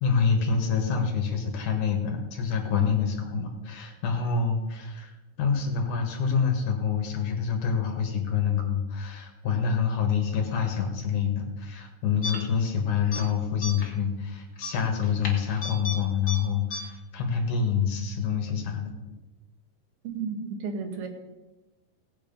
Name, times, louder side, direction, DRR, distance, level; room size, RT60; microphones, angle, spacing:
voice 1, 0.0-5.1 5.4-18.9, left 6 dB, 60° left, 3 dB, 2.9 m, -27 dB
sound 1, 12.2-12.7 13.0-13.2 13.6-14.0 14.6-16.0 16.3-16.4 16.7-16.8, left 3 dB, 35° left, 2.0 m, -34 dB
voice 2, 20.0-21.1, right 5 dB, 85° right, 4 dB, 3.5 m, -33 dB
18.0 x 7.8 x 5.3 m, 1.1 s
omnidirectional pair, 4.2 m